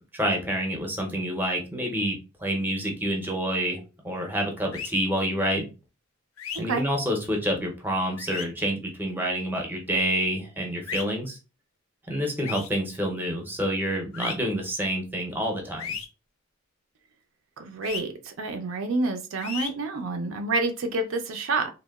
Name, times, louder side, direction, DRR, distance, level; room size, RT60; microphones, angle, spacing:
voice 1, 0.1-5.7 6.5-11.4 12.1-15.9, equal, 10° right, 2 dB, 0.5 m, -28 dB
sound 1, 4.7-4.9 6.4-6.6 8.2-8.5 10.9-11.0 12.4-12.7 14.1-14.3 15.8-16.1 17.8-18.0 19.4-19.7, left 7 dB, 80° left, 0.5 m, -34 dB
voice 2, 17.6-21.7, right 3 dB, 70° right, 6 dB, 0.4 m, -28 dB
2.8 x 2.1 x 2.2 m, 0.31 s
head